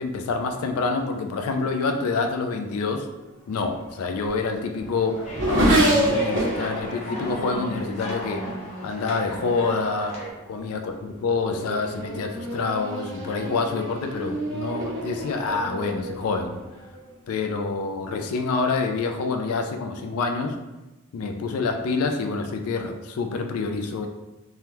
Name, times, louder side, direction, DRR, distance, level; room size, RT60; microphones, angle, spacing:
voice 1, 0.0-3.1 3.5-8.5 8.8-10.1 10.5-16.6 17.3-20.5 21.1-24.1, left 4 dB, 85° left, 5 dB, 0.3 m, -27 dB
Race car auto racing / Accelerating revving vroom, 3.7-9.6 10.4-10.8 11.2-17.1, right 1 dB, 55° right, 0.8 m, -28 dB
sound 1, 5.2-10.3, left 1 dB, 30° left, 0.7 m, -37 dB
3.4 x 2.2 x 2.8 m, 1.1 s
head